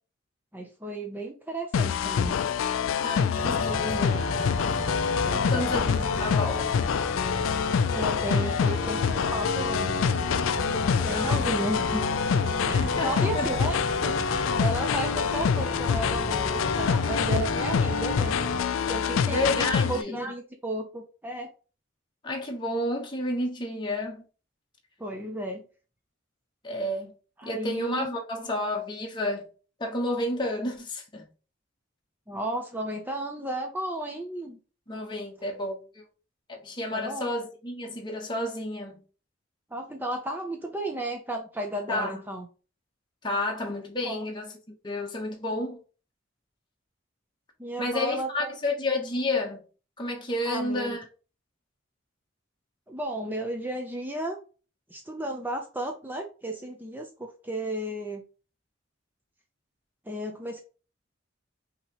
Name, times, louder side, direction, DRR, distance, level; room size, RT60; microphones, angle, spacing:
voice 1, 0.5-2.4 3.9-4.0 5.2-5.7 7.9-10.2 11.0-12.0 12.7-18.4 18.9-21.5 25.0-25.6 27.4-28.1 32.3-34.6 36.9-37.3 39.7-42.5 44.0-44.2 47.6-48.5 50.5-51.0 52.9-54.4 54.9-58.2 60.1-60.6, right 1 dB, 10° right, 0.5 m, -34 dB
sound 1, 1.7-20.0, left 7 dB, 90° left, 0.3 m, -26 dB
voice 2, 3.0-4.3 5.5-6.7 11.0-11.6 12.8-13.6 19.3-20.2 22.2-24.2 26.6-27.1 27.4-29.4 29.8-31.2 34.9-36.0 36.5-39.0 41.9-42.2 43.2-44.5 44.8-45.8 47.8-49.6 50.0-51.0, left 1 dB, 25° left, 0.9 m, -30 dB
sound 2, 3.3-18.6, equal, 50° left, 1.1 m, -33 dB
5.7 x 2.9 x 2.9 m
head